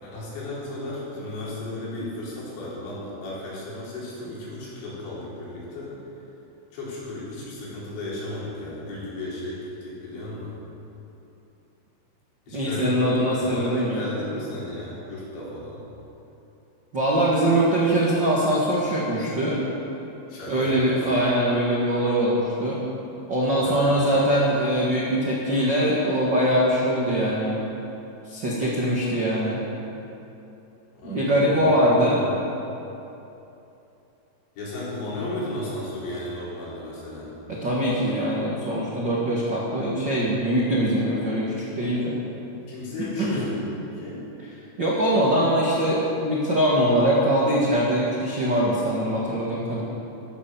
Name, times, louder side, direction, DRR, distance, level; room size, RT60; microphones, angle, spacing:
voice 1, 0.0-6.0 6.7-10.5 12.5-15.8 20.3-21.1 23.5-24.0 31.0-31.7 32.0-32.5 34.6-37.3 42.7-44.2, left 1 dB, 65° left, -7 dB, 5.9 m, -34 dB
voice 2, 12.5-14.0 16.9-19.6 20.5-22.8 23.3-27.6 28.3-29.6 31.0-32.2 37.5-42.2 43.2-43.4 44.8-49.8, right 1 dB, 75° right, -6 dB, 1.0 m, -22 dB
13.5 x 11.5 x 7.1 m, 2.9 s
omnidirectional pair, 5.5 m